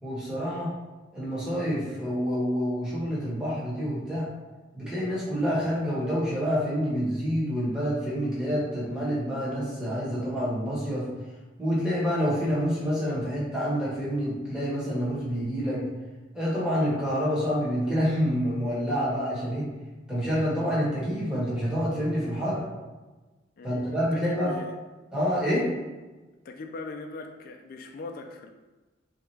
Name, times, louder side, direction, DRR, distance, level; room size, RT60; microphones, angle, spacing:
voice 1, 0.0-0.7 1.1-4.3 4.7-11.1 11.6-15.8 16.3-19.7 20.1-22.6 23.6-24.6 25.1-25.7, equal, 5° right, -8 dB, 1.2 m, -27 dB
voice 2, 23.6-24.8 26.4-28.5, left 3 dB, 50° left, 4 dB, 0.3 m, -40 dB
3.5 x 2.9 x 3.3 m, 1.2 s
head